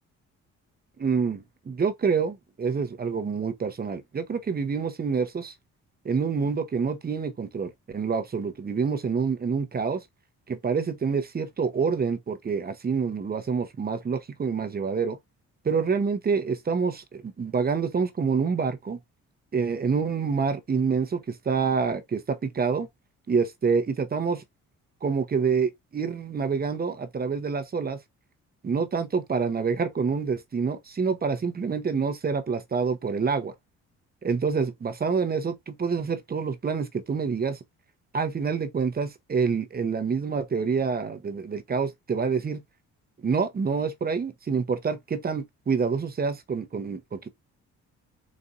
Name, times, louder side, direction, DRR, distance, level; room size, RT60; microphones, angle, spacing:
voice 1, 1.0-5.5 6.0-10.0 10.5-15.2 15.6-19.0 19.5-22.9 23.3-24.4 25.0-28.0 28.6-33.5 34.2-37.6 38.1-42.6 43.2-47.3, right 5 dB, 30° right, 0.8 m, -27 dB
4.2 x 2.5 x 3.7 m
cardioid pair, 90°, 30 cm